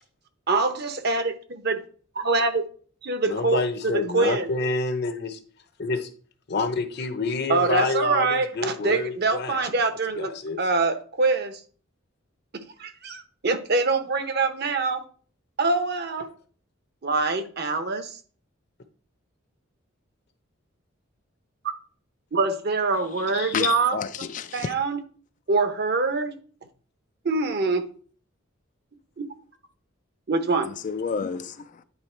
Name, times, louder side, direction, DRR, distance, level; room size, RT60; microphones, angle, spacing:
voice 1, 0.5-1.8 2.2-2.7 3.0-4.5 7.5-10.3 10.6-11.6 12.5-15.0 15.6-16.3 17.0-18.2 22.3-24.0 24.5-25.0 25.5-26.3 27.2-27.9 29.2-29.3 30.3-30.7, right 3 dB, 55° right, 0.9 m, -24 dB
voice 2, 3.2-5.4 5.8-6.1 6.5-9.6 10.2-10.6 23.3-23.5, left 3 dB, 55° left, 0.8 m, -28 dB
voice 3, 23.2-24.7 30.7-31.8, left 6 dB, 40° left, 0.3 m, -30 dB
9.7 x 3.5 x 4.4 m
head